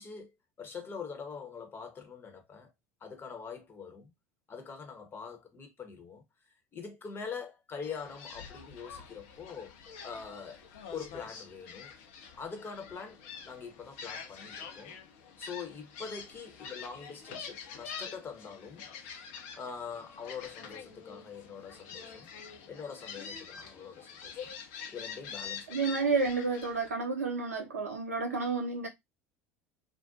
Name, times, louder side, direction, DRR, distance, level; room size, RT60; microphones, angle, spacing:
voice 1, 0.0-2.7 3.0-4.1 4.5-6.2 6.7-9.7 10.0-10.6 10.9-11.9 12.3-15.0 15.4-18.9 19.5-22.3 22.7-24.5 24.9-25.7, left 5 dB, 30° left, 0.9 m, -44 dB
Gull seagull, 7.8-26.9, left 6 dB, 60° left, 0.6 m, -46 dB
voice 2, 25.7-28.9, right 4 dB, 85° right, 0.7 m, -30 dB
2.5 x 2.1 x 2.5 m
figure-of-eight pair, 70°, 8 cm